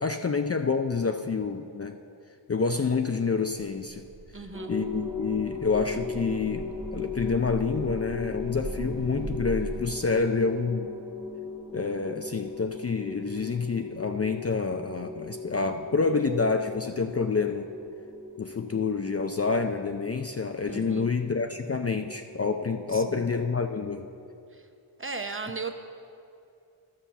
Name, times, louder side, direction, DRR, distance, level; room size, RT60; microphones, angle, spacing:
voice 1, 0.0-2.0 2.5-4.0 4.7-10.9 11.7-17.7 18.4-24.1, left 4 dB, 35° left, 6 dB, 0.4 m, -28 dB
sound 1, 3.7-9.8, right 2 dB, 65° right, 0.8 m, -40 dB
voice 2, 4.3-4.7 20.7-21.1 22.9-23.3 24.5-24.7 25.0-25.7, right 4 dB, 25° right, 6 dB, 0.8 m, -36 dB
sound 2, 4.5-24.3, left 3 dB, 10° right, 1.3 m, -39 dB
11.5 x 5.6 x 7.1 m, 2.6 s
wide cardioid pair, 45°, 47 cm